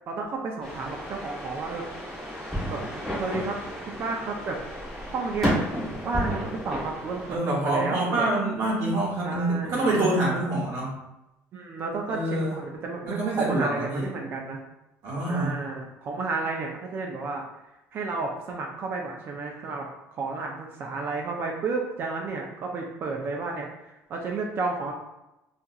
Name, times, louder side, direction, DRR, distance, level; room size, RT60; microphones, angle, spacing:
voice 1, 0.1-1.8 2.7-2.8 3.2-3.6 3.9-5.6 6.0-8.3 9.2-9.9 11.5-14.6 15.3-17.4 17.9-24.9, right 3 dB, 45° right, 0 dB, 0.4 m, -32 dB
sound 1, 0.6-7.4, equal, 5° left, 0.8 m, -32 dB
voice 2, 7.3-11.0 12.1-12.5 13.0-14.1 15.0-15.5, right 2 dB, 65° right, -5 dB, 0.8 m, -26 dB
2.8 x 2.4 x 2.3 m, 0.92 s
cardioid pair, 140°, 6 cm